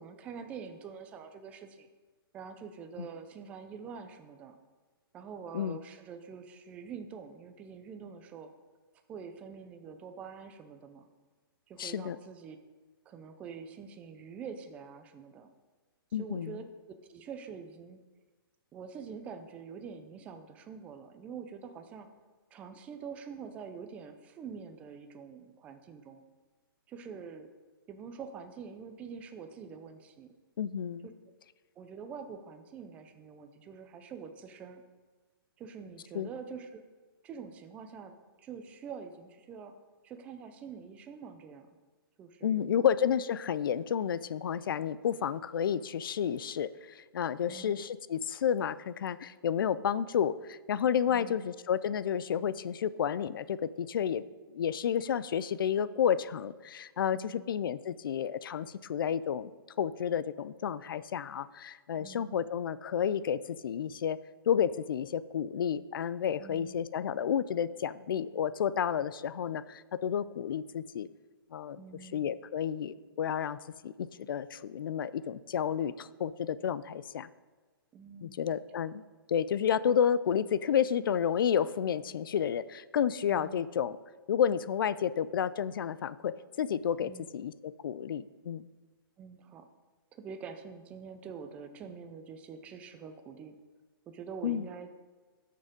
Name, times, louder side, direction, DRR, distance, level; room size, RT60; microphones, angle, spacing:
voice 1, 0.0-1.9 2.3-4.6 5.1-8.5 9.1-11.1 11.7-12.6 13.1-15.5 16.2-18.0 18.7-22.1 22.5-26.2 26.9-27.5 27.9-30.3 31.0-31.1 31.8-34.8 35.6-36.8 37.2-39.7 40.0-41.7 42.2-42.9 47.4-47.7 51.1-51.5 57.1-57.5 62.0-62.5 66.4-66.8 71.8-72.4 77.9-78.4 83.3-83.6 87.0-87.3 89.2-89.7 90.1-93.6 94.1-94.9, right 6 dB, 10° right, 7 dB, 0.4 m, -45 dB
voice 2, 11.8-12.2 16.1-16.6 30.6-31.1 36.1-36.3 42.4-54.2 54.5-59.5 59.8-64.2 64.5-71.1 71.5-71.8 72.1-77.3 78.2-79.0 79.3-84.0 84.3-88.7 94.4-94.7, left 8 dB, 65° left, 17 dB, 0.4 m, -31 dB
9.4 x 6.6 x 5.2 m, 1.3 s
hypercardioid pair, 170°, 12 cm